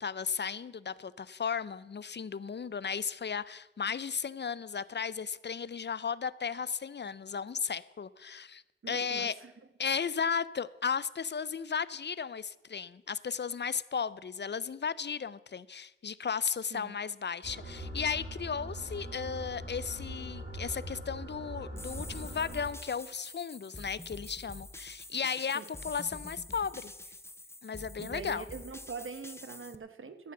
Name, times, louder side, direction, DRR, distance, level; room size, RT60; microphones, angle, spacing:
voice 1, 0.0-9.3 9.8-26.9 27.6-28.4, left 6 dB, 60° left, 18 dB, 0.5 m, -35 dB
voice 2, 8.8-9.5 16.7-16.9 25.5-25.7 28.0-30.3, right 5 dB, 90° right, 10 dB, 0.9 m, -43 dB
sound 1, 17.4-22.7, right 1 dB, 65° right, 3.9 m, -42 dB
sound 2, 21.8-29.8, left 1 dB, 10° left, 0.6 m, -47 dB
13.0 x 7.4 x 7.1 m, 1.0 s
wide cardioid pair, 75°, 20 cm